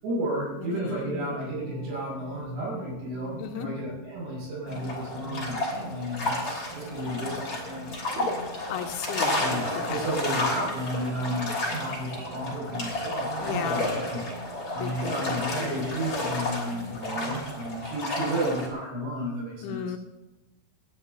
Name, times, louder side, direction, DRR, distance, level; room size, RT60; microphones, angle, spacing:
voice 1, 0.0-8.4 9.4-9.6 9.9-14.4 14.7-19.8, right 1 dB, 70° right, -4 dB, 8.3 m, -32 dB
voice 2, 0.6-1.4 3.4-3.7 8.7-9.4 9.7-10.1 13.4-13.9 14.7-15.9 19.6-20.0, left 8 dB, 85° left, 6 dB, 3.5 m, -35 dB
sound 1, 1.4-17.5, right 2 dB, 15° right, 4.5 m, -44 dB
sound 2, 4.7-18.7, left 2 dB, 30° left, 3.7 m, -32 dB
27.0 x 11.5 x 2.7 m, 1.0 s
omnidirectional pair, 5.4 m